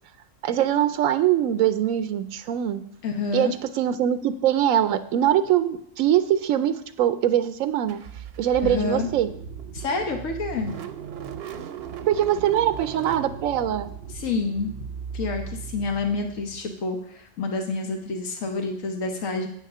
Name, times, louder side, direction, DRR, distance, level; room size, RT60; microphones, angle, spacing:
voice 1, 0.4-2.8 3.3-8.0 8.4-9.3 12.0-13.9, right 10 dB, 90° right, 12 dB, 1.0 m, -22 dB
voice 2, 3.0-3.5 8.6-9.1 9.7-10.7 14.1-14.7 15.1-19.5, left 4 dB, 85° left, 4 dB, 1.4 m, -28 dB
Car / Engine starting, 7.9-16.6, right 7 dB, 60° right, 0.8 m, -37 dB
8.9 x 6.4 x 6.7 m, 0.69 s
omnidirectional pair, 1.4 m